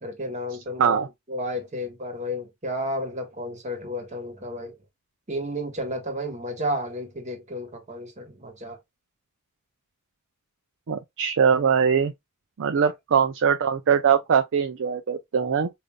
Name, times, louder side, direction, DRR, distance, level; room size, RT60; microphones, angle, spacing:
voice 1, 0.0-4.8 5.3-8.8, equal, 35° right, 1.3 m, -32 dB
voice 2, 10.9-12.1 12.6-15.7, right 7 dB, 60° right, 0.4 m, -22 dB
5.1 x 2.6 x 2.2 m
head